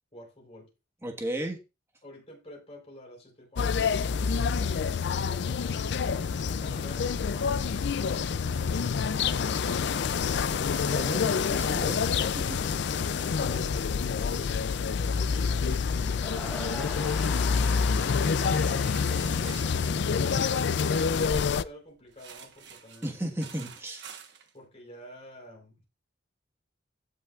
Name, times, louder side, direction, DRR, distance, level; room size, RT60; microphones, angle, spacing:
voice 1, 0.1-0.7 2.0-5.8 12.9-15.5 21.1-23.1 24.5-25.8, equal, 35° left, 4.0 m, -50 dB
voice 2, 1.0-1.6 10.9-12.0 12.3-12.6 23.0-24.0, right 1 dB, 15° right, 1.5 m, -34 dB
sound 1, 3.6-21.6, left 5 dB, 60° left, 0.4 m, -27 dB
sound 2, 16.1-20.3, left 1 dB, 5° left, 1.6 m, -42 dB
sound 3, 18.7-21.7 22.1-24.5, right 7 dB, 60° right, 1.2 m, -48 dB
16.0 x 5.6 x 2.4 m
head